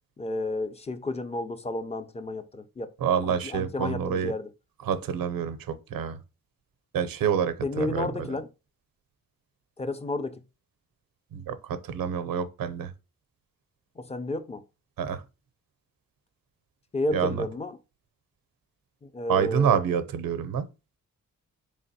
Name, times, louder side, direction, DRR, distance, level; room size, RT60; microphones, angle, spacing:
voice 1, 0.2-2.9 3.2-4.5 7.6-8.5 9.8-10.4 14.0-14.6 16.9-17.8 19.0-19.8, left 2 dB, 20° left, 0.4 m, -31 dB
voice 2, 3.0-4.3 4.8-6.2 6.9-8.3 11.3-12.9 15.0-15.2 17.1-17.5 19.3-20.7, right 8 dB, 90° right, 0.6 m, -27 dB
3.9 x 3.3 x 2.7 m
cardioid pair, 75°, 34 cm